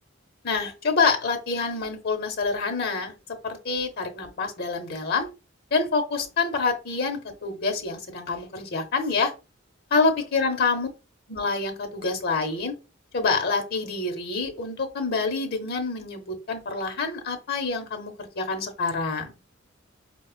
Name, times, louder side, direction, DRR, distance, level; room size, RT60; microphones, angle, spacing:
voice 1, 0.4-3.1 3.4-5.3 5.7-9.3 9.9-10.9 11.3-12.8 13.1-19.3, left 4 dB, 55° left, 0.9 m, -27 dB
4.9 x 2.3 x 2.2 m
head